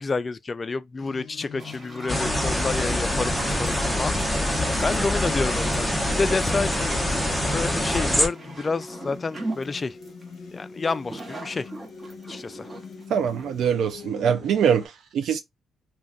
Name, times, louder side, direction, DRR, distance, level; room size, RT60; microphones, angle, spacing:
voice 1, 0.0-7.1 7.4-10.0 10.5-11.7 12.3-12.7, left 4 dB, 30° left, 0.3 m, -29 dB
sound 1, 1.0-14.9, left 5 dB, 60° left, 0.7 m, -43 dB
sound 2, 1.6-13.7, right 2 dB, 25° right, 0.9 m, -40 dB
sound 3, 2.1-8.3, left 1 dB, ahead, 0.8 m, -25 dB
voice 2, 13.1-15.4, right 8 dB, 70° right, 0.3 m, -23 dB
2.5 x 2.3 x 3.5 m
cardioid pair, 90°, 0 cm